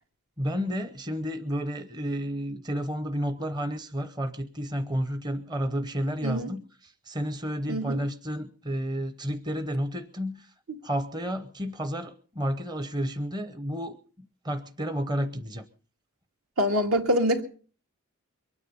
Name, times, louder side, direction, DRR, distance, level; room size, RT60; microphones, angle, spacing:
voice 1, 0.4-10.5 10.8-15.6, equal, 20° right, 0.8 m, -31 dB
voice 2, 7.7-8.0 16.6-17.4, equal, 70° right, 2.1 m, -25 dB
23.0 x 9.7 x 5.4 m
head